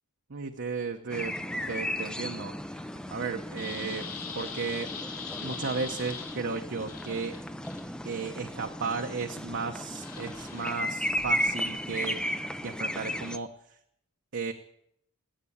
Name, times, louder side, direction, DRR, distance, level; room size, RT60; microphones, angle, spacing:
voice 1, 0.3-1.3 1.7-4.1 4.3-4.9 5.4-7.4 8.0-12.2 12.6-13.5 14.3-14.5, right 4 dB, 55° right, 3 dB, 0.9 m, -34 dB
sound 1, 1.1-13.4, equal, 5° left, 0.5 m, -35 dB
sound 2, 1.2-13.1, left 6 dB, 85° left, 3.3 m, -45 dB
19.0 x 8.3 x 8.4 m, 0.74 s
head